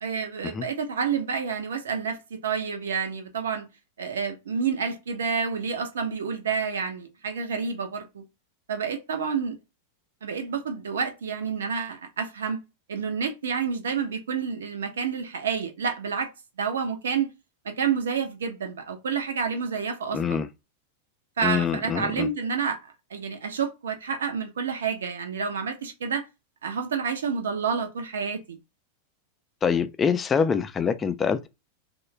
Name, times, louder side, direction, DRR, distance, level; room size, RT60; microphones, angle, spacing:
voice 1, 0.0-3.7 4.0-8.2 8.7-9.5 10.2-12.6 12.9-16.3 16.6-17.3 17.6-20.4 21.4-22.8 23.1-26.2 26.6-28.6, right 6 dB, 65° right, 0.5 m, -29 dB
voice 2, 20.1-20.5 21.4-22.3 29.6-31.5, left 6 dB, 20° left, 0.3 m, -25 dB
3.0 x 2.1 x 3.0 m
figure-of-eight pair, 90°, 0 cm